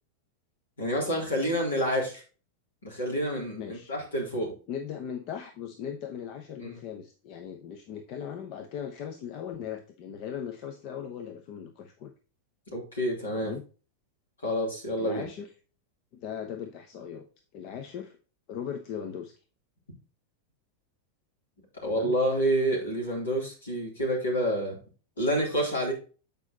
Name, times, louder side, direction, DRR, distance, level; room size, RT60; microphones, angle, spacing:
voice 1, 0.8-2.2 2.8-4.5 6.6-6.8 12.7-13.5 14.4-15.2 21.8-24.8 25.2-25.9, equal, 70° left, -1 dB, 3.9 m, -28 dB
voice 2, 3.5-3.9 4.7-12.1 13.3-13.7 15.0-15.5 16.1-17.3 17.5-18.2 18.5-19.3 21.8-22.2, left 8 dB, 40° left, 6 dB, 0.9 m, -38 dB
8.5 x 5.3 x 4.1 m, 0.36 s
figure-of-eight pair, 90°, 0 cm